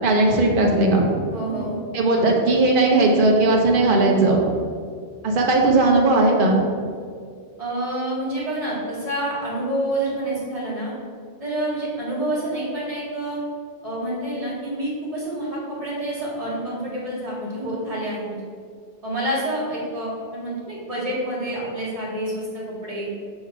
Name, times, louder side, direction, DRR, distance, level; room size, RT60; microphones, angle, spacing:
voice 1, 0.0-1.0 1.9-4.4 5.2-6.6, right 2 dB, 50° right, 0 dB, 1.1 m, -17 dB
voice 2, 1.3-1.8 7.6-10.9 11.4-13.4 13.8-18.4 19.0-23.1, right 1 dB, 30° right, -7 dB, 2.1 m, -28 dB
5.4 x 4.4 x 6.1 m, 2.1 s
omnidirectional pair, 1.2 m